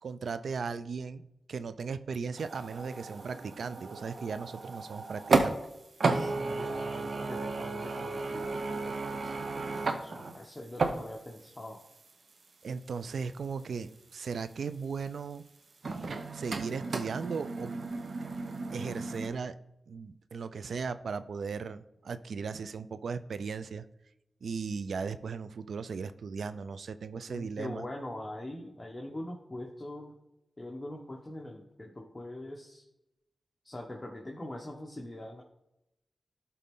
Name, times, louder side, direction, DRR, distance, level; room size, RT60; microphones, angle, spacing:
voice 1, 0.0-5.6 12.6-15.4 16.3-17.7 18.7-19.6 19.9-23.8 24.4-27.8, right 5 dB, 80° right, 13 dB, 0.4 m, -37 dB
sound 1, 2.4-5.7 6.0-11.5 11.8-11.9 15.8-19.3, right 3 dB, 65° right, 0.8 m, -33 dB
voice 2, 6.0-11.8 27.3-30.2 30.6-32.8 33.6-35.4, left 1 dB, 25° left, 0 dB, 1.2 m, -43 dB
12.0 x 4.2 x 3.7 m, 0.88 s
cardioid pair, 50°, 0 cm